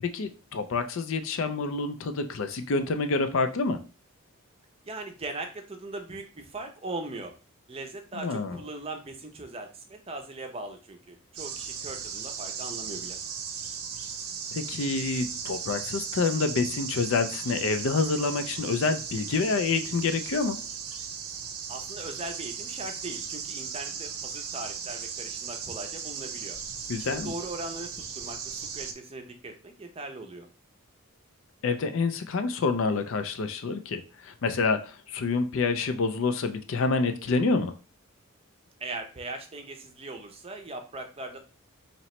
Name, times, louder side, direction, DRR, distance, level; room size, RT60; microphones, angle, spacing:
voice 1, 0.0-3.8 8.1-8.6 14.5-20.6 26.9-27.4 31.6-37.7, left 4 dB, 60° left, 8 dB, 0.4 m, -27 dB
voice 2, 4.8-7.4 7.7-13.2 21.7-26.6 27.0-30.5 38.8-41.4, right 2 dB, 25° right, 5 dB, 0.6 m, -39 dB
sound 1, 11.4-28.9, right 6 dB, 85° right, 0.6 m, -37 dB
3.0 x 2.9 x 4.2 m, 0.34 s
head